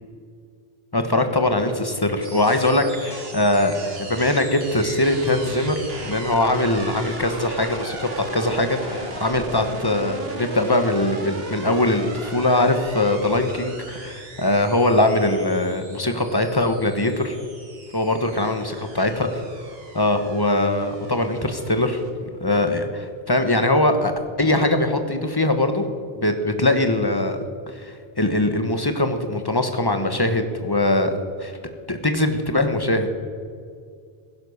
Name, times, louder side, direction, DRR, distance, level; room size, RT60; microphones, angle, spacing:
voice 1, 0.9-17.4 17.9-19.4 19.9-22.0 22.4-24.1 24.4-25.8 26.1-27.4 27.7-31.6 31.9-33.1, left 1 dB, 25° left, 7 dB, 1.3 m, -21 dB
sound 1, 2.2-22.1, right 2 dB, 75° right, 2.0 m, -37 dB
16.0 x 11.0 x 6.6 m, 2.2 s
omnidirectional pair, 1.0 m